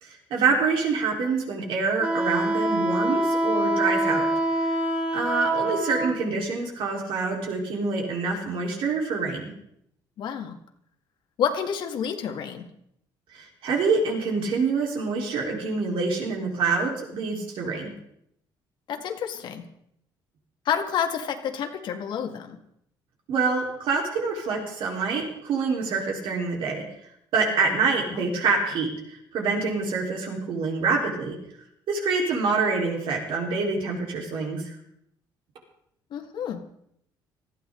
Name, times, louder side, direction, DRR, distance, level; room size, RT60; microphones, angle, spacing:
voice 1, 0.0-4.2 4.6-4.7 5.1-9.5 13.3-17.9 23.3-26.8 27.3-31.4 31.9-34.7, right 4 dB, 70° right, 0 dB, 4.4 m, -26 dB
Wind instrument woodwind instrument, 2.0-6.1, right 1 dB, 20° right, 4.0 m, -25 dB
voice 2, 10.2-10.6 11.4-12.7 18.9-19.6 20.7-22.6 28.1-28.4 36.1-36.6, left 8 dB, 60° left, 5 dB, 2.1 m, -29 dB
19.5 x 14.5 x 4.0 m, 0.73 s
cardioid pair, 140°, 9 cm